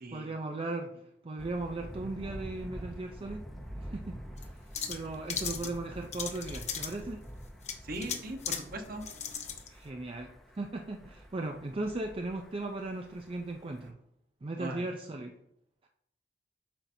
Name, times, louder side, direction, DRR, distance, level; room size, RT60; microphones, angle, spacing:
voice 1, 0.1-0.9 1.2-3.4 3.7-4.5 4.9-7.2 9.7-14.0 14.4-15.4, right 2 dB, 30° right, 3 dB, 0.5 m, -37 dB
Thunder, 1.4-13.9, equal, ahead, 0.7 m, -47 dB
sound 1, 4.4-4.5 4.7-5.7 6.1-7.0 7.6-8.6 9.0-9.7, left 7 dB, 40° left, 0.8 m, -36 dB
voice 2, 7.8-9.0 14.6-14.9, right 1 dB, 55° right, 4 dB, 1.1 m, -39 dB
8.6 x 5.8 x 2.7 m, 0.77 s
head